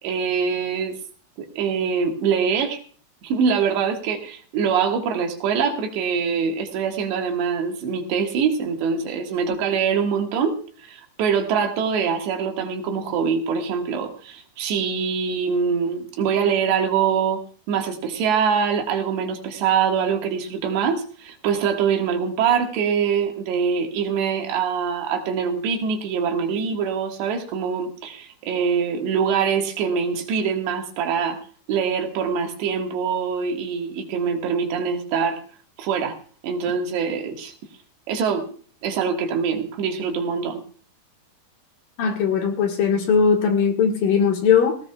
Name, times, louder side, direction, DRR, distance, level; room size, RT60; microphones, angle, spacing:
voice 1, 0.0-1.0 1.4-2.8 3.2-17.4 17.7-31.4 31.7-35.4 35.8-36.2 36.4-37.5 38.1-38.5 38.8-40.6, right 6 dB, 80° right, 3 dB, 3.9 m, -24 dB
voice 2, 42.0-44.8, left 6 dB, 65° left, 3 dB, 2.8 m, -19 dB
18.5 x 16.5 x 2.3 m, 0.43 s
omnidirectional pair, 5.0 m